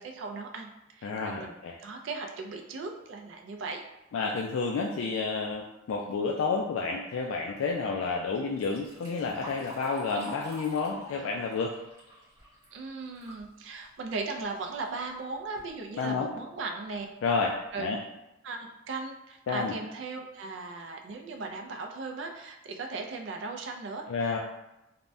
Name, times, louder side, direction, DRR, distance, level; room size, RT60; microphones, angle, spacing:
voice 1, 0.0-1.6 1.8-3.8 12.7-17.1 17.7-18.0 18.4-24.0, right 3 dB, 65° right, 3 dB, 0.4 m, -37 dB
voice 2, 1.0-1.8 4.1-11.7 16.0-16.3 17.2-17.5 17.8-18.0 19.5-19.7 24.1-24.4, left 4 dB, 80° left, 0 dB, 0.3 m, -30 dB
Liquid, 8.4-13.5 13.9-14.0 14.9-15.0 15.4-15.7 16.3-16.4 16.9-17.0 17.4-17.7, equal, 15° right, 0.9 m, -45 dB
3.3 x 2.1 x 2.5 m, 0.95 s
head